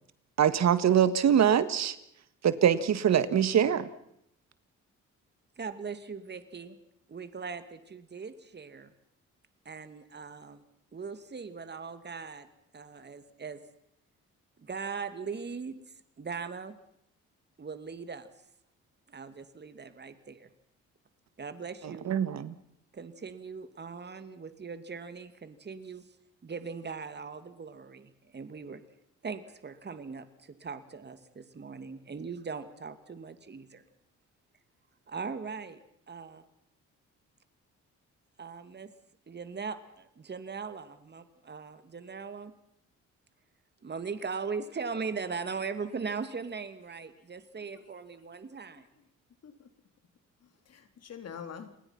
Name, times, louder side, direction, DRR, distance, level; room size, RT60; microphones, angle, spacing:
voice 1, 0.4-2.0 2.4-3.9 22.1-22.5, right 9 dB, 60° right, 14 dB, 1.7 m, -23 dB
voice 2, 5.6-6.8 7.1-8.9 9.6-10.6 10.9-12.5 12.7-13.6 14.6-15.8 16.2-16.7 17.6-18.3 19.1-20.5 21.4-22.1 22.9-26.0 26.4-28.8 29.2-33.8 35.1-35.8 36.1-36.5 38.4-38.9 39.3-42.5 43.8-48.9, right 5 dB, 35° right, 10 dB, 2.6 m, -40 dB
voice 3, 48.8-49.1 49.4-49.7 50.4-51.7, left 7 dB, 55° left, 8 dB, 3.7 m, -46 dB
29.5 x 20.5 x 5.9 m, 0.75 s
cardioid pair, 90°, 30 cm